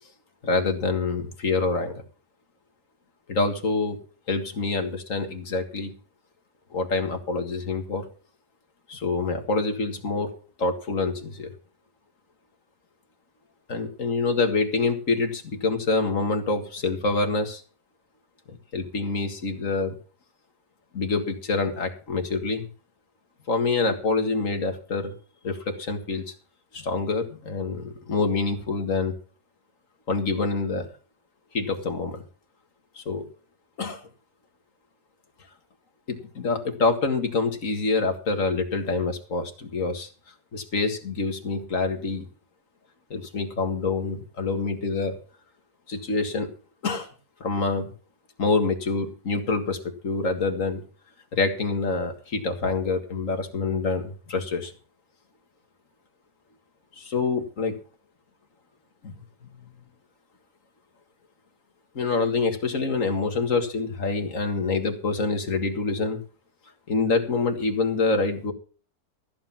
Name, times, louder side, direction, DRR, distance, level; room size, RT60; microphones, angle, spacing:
voice 1, 0.4-2.0 3.3-4.0 4.3-5.9 6.7-8.1 8.9-10.3 10.6-11.5 13.7-17.6 18.5-19.9 20.9-22.7 23.5-25.1 25.4-26.3 26.7-29.2 30.1-30.9 31.5-32.2 33.0-33.3 33.8-34.0 36.1-40.1 40.5-42.3 43.1-45.2 45.9-46.5 46.8-47.1 47.4-47.9 48.4-50.8 51.3-54.7 57.0-57.8 59.0-59.2 62.0-66.2 66.9-68.5, left 3 dB, 50° left, 5 dB, 2.1 m, -26 dB
14.5 x 7.7 x 5.8 m, 0.39 s
omnidirectional pair, 1.8 m